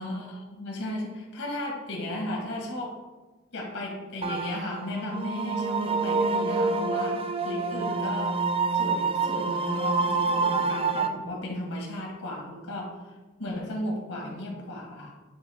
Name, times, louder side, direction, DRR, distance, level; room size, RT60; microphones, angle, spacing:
voice 1, 0.0-3.0 3.5-8.4 8.7-15.1, left 1 dB, 85° left, -2 dB, 1.5 m, -35 dB
sound 1, 4.2-11.1, right 4 dB, 25° right, 0.4 m, -27 dB
8.6 x 3.6 x 4.3 m, 1.2 s
head